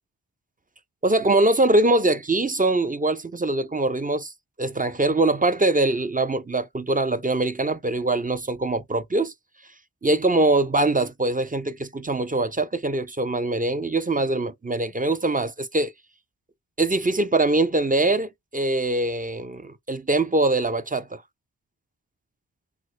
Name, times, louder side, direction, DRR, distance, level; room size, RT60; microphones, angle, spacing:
voice 1, 1.0-4.3 4.6-9.3 10.0-15.9 16.8-21.2, right 2 dB, 20° right, 0.6 m, -23 dB
3.5 x 2.1 x 3.1 m
cardioid pair, 40°, 42 cm